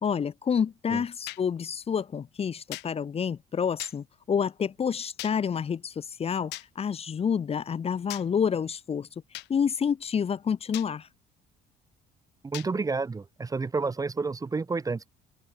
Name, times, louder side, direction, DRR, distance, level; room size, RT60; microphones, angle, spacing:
voice 1, 0.0-9.1 9.5-11.1, left 7 dB, 35° left, 1.4 m, -28 dB
sound 1, 1.3-1.4 2.7-2.9 3.8-4.0 5.2-5.4 6.5-6.7 8.1-8.3 9.3-9.5 10.7-10.9 12.5-12.7, left 20 dB, 90° left, 4.4 m, -38 dB
voice 2, 12.4-15.1, right 4 dB, 20° right, 1.1 m, -30 dB
cardioid pair, 110°, 17 cm